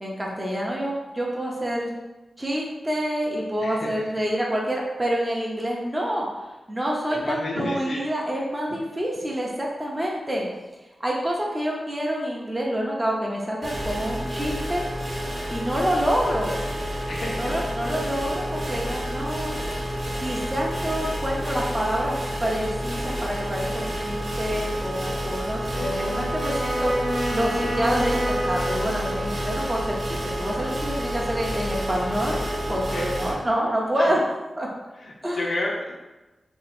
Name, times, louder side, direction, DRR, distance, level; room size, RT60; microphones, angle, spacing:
voice 1, 0.0-1.9 2.4-6.2 6.7-10.5 11.0-14.8 15.5-16.6 17.3-19.6 20.2-22.1 22.4-26.9 27.3-34.2 34.6-34.7 35.2-35.4, equal, 15° right, -3 dB, 0.7 m, -27 dB
voice 2, 3.6-4.0 7.1-8.0 17.1-17.6 17.9-18.1 32.9-33.4 34.0-34.1 35.0-35.9, left 1 dB, 65° left, -2 dB, 0.6 m, -31 dB
sound 1, 13.6-33.3, equal, 50° right, 0.9 m, -29 dB
Wind instrument woodwind instrument, 25.7-29.9, equal, 85° right, 1.1 m, -29 dB
3.0 x 2.7 x 4.2 m, 1.1 s
wide cardioid pair, 110°, 0 cm